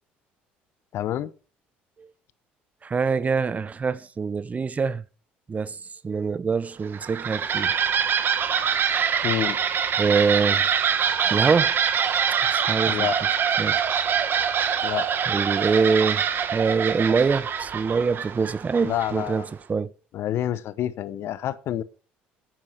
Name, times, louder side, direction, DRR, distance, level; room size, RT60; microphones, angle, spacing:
voice 1, 0.9-1.3 9.2-9.6 12.9-13.2 14.8-15.1 18.8-19.5 20.1-21.8, left 12 dB, 60° left, 0.9 m, -28 dB
voice 2, 2.8-5.0 5.5-5.8 6.0-7.7 10.0-10.7 11.3-11.7 12.5-13.1 13.6-13.8 15.3-16.2 16.5-19.9, right 5 dB, 30° right, 0.8 m, -24 dB
sound 1, 6.8-19.4, right 7 dB, 45° right, 1.4 m, -24 dB
9.1 x 9.0 x 5.9 m
hypercardioid pair, 65°, 5 cm